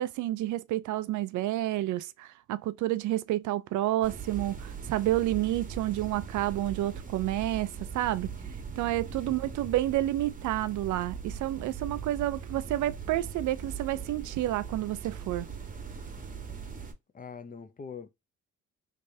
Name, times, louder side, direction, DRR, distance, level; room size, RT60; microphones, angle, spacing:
voice 1, 0.0-8.3 8.8-15.5, right 14 dB, 75° right, 0.5 m, -30 dB
sound 1, 4.0-16.9, right 6 dB, 25° right, 0.9 m, -40 dB
voice 2, 9.2-9.7 17.1-18.1, left 6 dB, 30° left, 0.6 m, -43 dB
3.3 x 3.2 x 2.7 m
cardioid pair, 90°, 30 cm